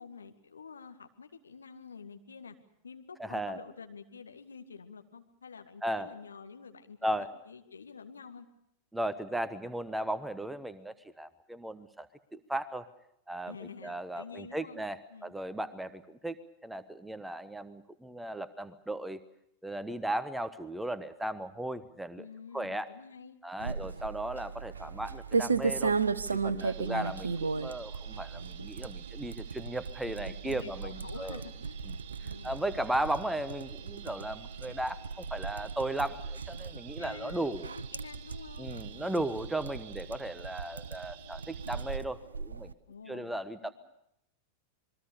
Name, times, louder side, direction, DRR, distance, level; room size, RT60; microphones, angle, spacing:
voice 1, 0.0-2.6 2.8-8.5 13.5-14.8 15.1-15.3 22.2-23.8 26.3-26.6 30.0-31.9 32.2-32.5 37.0-39.6 42.9-43.7, left 5 dB, 75° left, 7 dB, 2.0 m, -49 dB
voice 2, 3.2-3.6 5.8-6.1 7.0-7.3 8.9-12.9 13.3-19.2 19.6-22.2 22.5-22.9 23.4-26.0 26.4-31.4 32.2-37.7 38.6-42.7 43.1-43.7, right 1 dB, 5° right, 14 dB, 1.1 m, -36 dB
sound 1, 23.6-42.7, right 4 dB, 75° right, 0.9 m, -36 dB
sound 2, 26.6-42.0, right 12 dB, 45° right, 1.4 m, -53 dB
27.0 x 22.0 x 6.7 m, 0.77 s
figure-of-eight pair, 90°, 0 cm